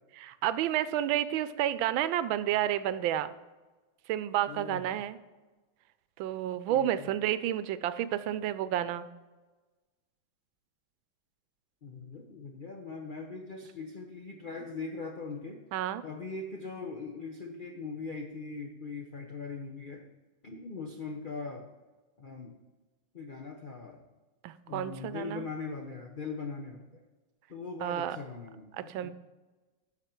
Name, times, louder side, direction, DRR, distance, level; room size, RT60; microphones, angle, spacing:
voice 1, 0.2-3.3 4.1-5.2 6.2-9.1 15.7-16.0 24.4-25.5 27.8-28.2 28.9-29.1, right 11 dB, 80° right, 14 dB, 1.3 m, -30 dB
voice 2, 4.5-5.0 6.7-7.1 11.8-15.6 16.0-20.1 20.4-21.7 22.2-22.6 23.1-24.0 24.7-27.0 27.5-29.1, left 4 dB, 85° left, 3 dB, 0.4 m, -41 dB
11.5 x 6.3 x 4.4 m, 1.2 s
omnidirectional pair, 2.2 m